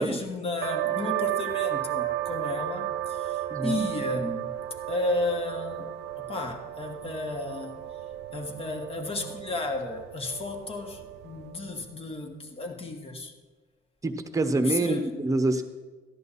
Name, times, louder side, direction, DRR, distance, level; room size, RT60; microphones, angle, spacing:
voice 1, 0.0-4.6 4.9-5.9 6.2-7.8 8.3-13.3 14.6-15.1, left 2 dB, 35° left, 4 dB, 1.6 m, -33 dB
sound 1, 0.6-11.9, right 13 dB, 90° right, 0.6 m, -33 dB
voice 2, 3.5-3.8 14.0-15.6, right 2 dB, 20° right, 7 dB, 1.0 m, -26 dB
13.5 x 11.0 x 4.2 m, 1.3 s
cardioid pair, 110°, 17 cm